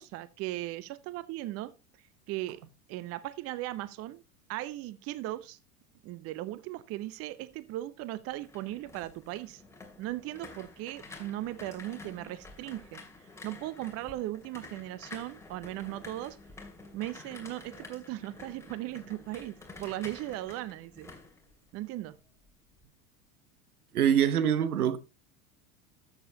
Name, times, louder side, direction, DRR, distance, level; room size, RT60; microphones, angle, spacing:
voice 1, 0.0-1.7 2.3-2.6 2.9-4.2 4.5-5.6 6.0-9.6 10.0-13.0 13.4-16.4 16.9-21.1 21.7-22.2, right 16 dB, 35° right, 0.6 m, -38 dB
sound 1, 8.1-22.2 22.5-22.8, left 3 dB, 5° left, 2.4 m, -50 dB
voice 2, 23.9-25.0, right 9 dB, 75° right, 1.0 m, -24 dB
13.0 x 7.3 x 2.8 m
figure-of-eight pair, 85°, 45 cm